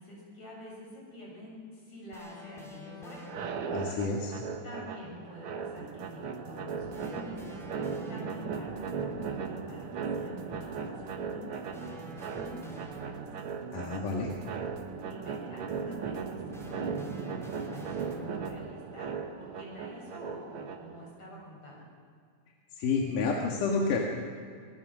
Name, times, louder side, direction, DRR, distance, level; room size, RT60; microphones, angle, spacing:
voice 1, 0.0-3.3 4.6-7.6 8.1-13.3 15.0-21.8, left 1 dB, 60° left, -2 dB, 8.3 m, -47 dB
sound 1, 2.1-3.9 6.9-8.8 11.7-13.7 16.5-18.7, right 2 dB, ahead, 3.0 m, -47 dB
sound 2, 3.2-21.1, right 6 dB, 55° right, 1.8 m, -38 dB
voice 2, 3.7-4.3 13.7-14.3 22.8-24.0, left 4 dB, 85° left, -1 dB, 3.4 m, -29 dB
sound 3, 5.8-18.7, right 5 dB, 75° right, 2.9 m, -47 dB
25.0 x 22.0 x 6.2 m, 2.2 s
omnidirectional pair, 3.6 m